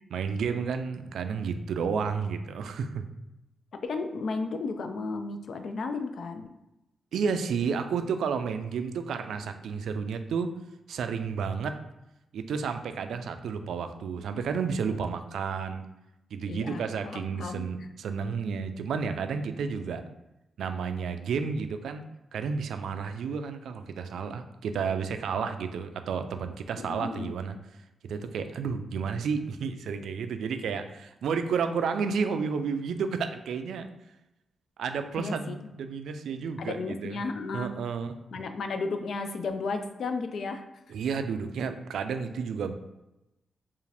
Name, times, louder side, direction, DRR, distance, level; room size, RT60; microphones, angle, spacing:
voice 1, 0.1-3.1 7.1-10.5 10.9-11.8 12.3-15.8 16.3-20.0 20.6-22.0 22.3-27.6 28.0-33.9 34.8-37.2 37.5-38.2 40.9-42.7, right 6 dB, 90° right, 8 dB, 0.3 m, -31 dB
voice 2, 3.7-6.6 14.9-15.0 16.5-17.7 26.8-27.3 35.2-35.6 36.6-37.7 38.3-40.7, left 3 dB, 60° left, 8 dB, 0.3 m, -34 dB
4.6 x 2.5 x 3.4 m, 0.92 s
wide cardioid pair, 160°, 0 cm